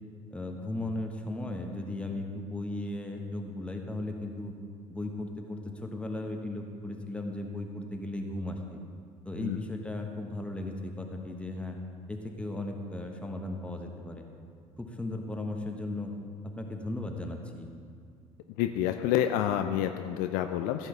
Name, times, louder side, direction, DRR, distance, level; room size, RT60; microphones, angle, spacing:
voice 1, 0.3-4.5 4.9-8.8 9.2-11.8 12.1-14.3 14.8-16.1 16.4-17.7, left 2 dB, 5° left, 2 dB, 1.2 m, -36 dB
voice 2, 18.6-20.9, left 11 dB, 55° left, 7 dB, 0.4 m, -28 dB
14.5 x 7.8 x 3.3 m, 2.2 s
figure-of-eight pair, 60°, 17 cm